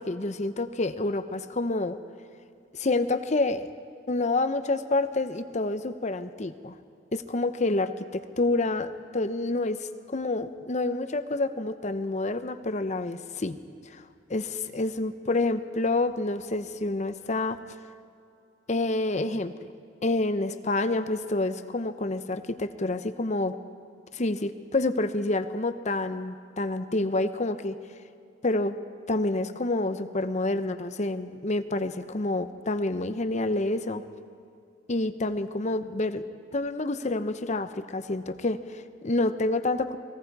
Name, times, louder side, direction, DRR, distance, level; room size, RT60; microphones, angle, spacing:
voice 1, 0.0-2.0 2.7-3.7 4.1-6.7 7.1-13.6 13.9-14.0 14.3-17.6 18.7-19.7 20.0-23.6 24.1-27.8 28.4-28.7 29.1-34.0 34.9-36.2 36.5-40.0, left 2 dB, 40° left, 10 dB, 0.8 m, -28 dB
30.0 x 20.5 x 4.8 m, 2.4 s
head